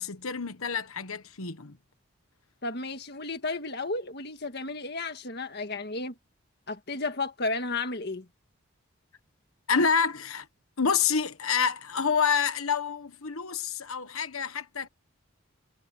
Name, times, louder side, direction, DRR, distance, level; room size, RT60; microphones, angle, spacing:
voice 1, 0.0-1.8 9.7-10.5 10.8-14.9, left 6 dB, 80° left, 1.3 m, -28 dB
voice 2, 2.6-6.2 6.7-8.3, left 3 dB, 50° left, 1.7 m, -33 dB
head